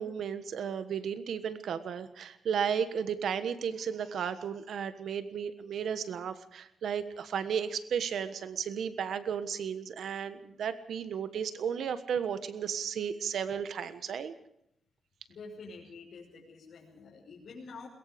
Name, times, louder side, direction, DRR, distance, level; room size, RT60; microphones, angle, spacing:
voice 1, 0.0-14.3, right 7 dB, 75° right, 11 dB, 1.3 m, -34 dB
voice 2, 15.3-17.9, left 4 dB, 60° left, -5 dB, 5.9 m, -47 dB
22.5 x 22.0 x 5.2 m, 0.77 s
wide cardioid pair, 135°, 0 cm